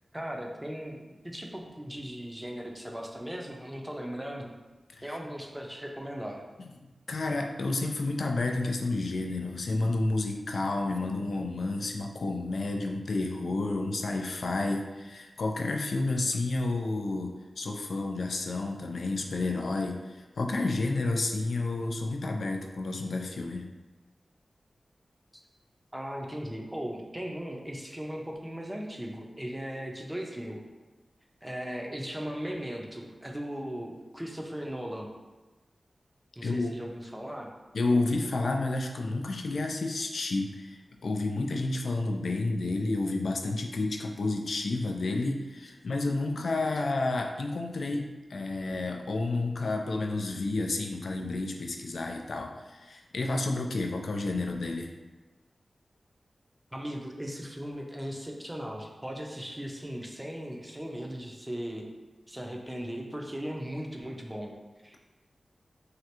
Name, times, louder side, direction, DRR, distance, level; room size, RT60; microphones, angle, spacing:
voice 1, 0.1-4.5 5.0-6.4 25.9-30.6 31.4-35.1 36.4-37.5 56.7-61.9 62.3-64.5 64.8-65.0, equal, 15° right, 1 dB, 0.5 m, -38 dB
voice 2, 7.1-23.7 36.4-36.7 37.7-54.9, left 2 dB, 80° left, 2 dB, 0.3 m, -30 dB
3.2 x 2.4 x 2.9 m, 1.2 s
cardioid pair, 55°, 0 cm